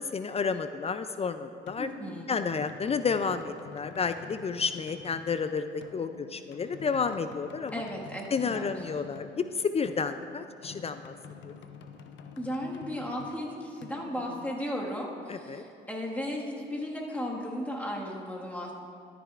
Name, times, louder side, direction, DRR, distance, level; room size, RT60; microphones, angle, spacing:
voice 1, 0.0-1.9 2.3-7.8 8.3-9.4 9.7-11.1 11.5-11.6 15.3-15.6, left 5 dB, 30° left, 10 dB, 0.3 m, -31 dB
sound 1, 1.7-15.2, left 6 dB, 70° left, 0.7 m, -49 dB
voice 2, 1.8-2.3 7.7-8.9 12.4-18.7, equal, 10° left, -2 dB, 1.7 m, -35 dB
13.0 x 9.8 x 2.5 m, 2.5 s
cardioid pair, 90°, 20 cm